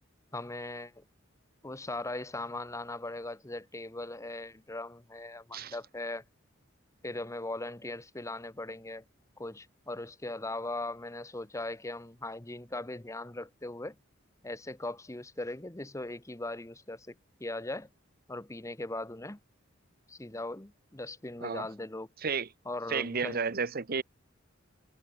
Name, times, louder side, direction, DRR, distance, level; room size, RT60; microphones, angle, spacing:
voice 1, 0.3-1.0 1.6-6.2 7.0-9.0 9.4-14.0 14.4-17.9 18.3-19.4 20.1-22.1 22.7-23.4, left 2 dB, 15° left, 1.0 m, -39 dB
voice 2, 22.9-24.0, right 5 dB, 50° right, 1.0 m, -32 dB
head